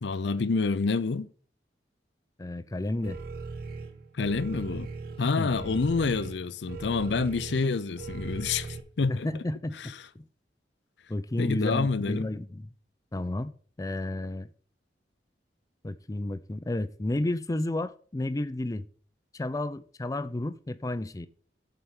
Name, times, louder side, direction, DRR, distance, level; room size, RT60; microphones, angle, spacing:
voice 1, 0.0-1.3 4.1-4.9 5.2-9.3 9.8-9.9 11.4-12.3, left 4 dB, 80° left, 0.6 m, -28 dB
voice 2, 2.4-3.2 5.4-5.8 9.1-10.2 11.1-12.7 13.1-14.5 15.8-18.9 19.3-21.3, left 1 dB, 20° left, 0.4 m, -32 dB
sound 1, 3.0-8.8, right 4 dB, 60° right, 1.3 m, -39 dB
7.6 x 4.6 x 7.1 m
head